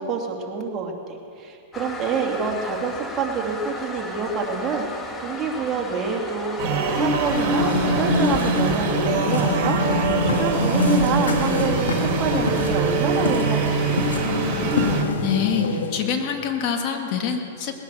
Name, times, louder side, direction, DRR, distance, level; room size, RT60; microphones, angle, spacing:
voice 1, 0.0-14.9, right 5 dB, 25° right, 0 dB, 2.6 m, -27 dB
Toilet flush, 1.7-9.2, left 3 dB, 15° left, 1.5 m, -35 dB
sound 1, 6.6-15.0, right 4 dB, 50° right, 2.6 m, -24 dB
sound 2, 7.2-16.1, left 2 dB, 90° left, 1.7 m, -25 dB
voice 2, 15.2-17.8, left 7 dB, 45° left, 3 dB, 1.9 m, -25 dB
20.0 x 10.0 x 6.9 m, 2.6 s
hypercardioid pair, 120°, 0 cm